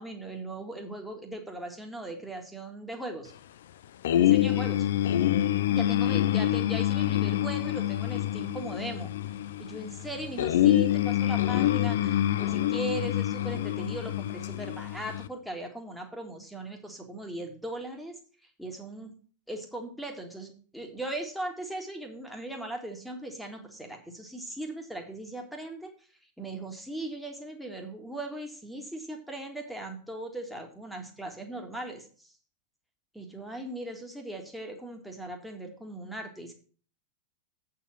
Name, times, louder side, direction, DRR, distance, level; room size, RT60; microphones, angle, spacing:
voice 1, 0.0-3.3 4.2-4.9 5.7-9.1 9.6-18.1 18.6-19.2 19.5-25.9 26.4-32.3 33.1-36.5, right 1 dB, ahead, 1 dB, 1.7 m, -38 dB
sound 1, 4.0-15.3, left 13 dB, 60° left, 0.4 m, -26 dB
8.0 x 4.8 x 7.3 m, 0.42 s
figure-of-eight pair, 90°, 0 cm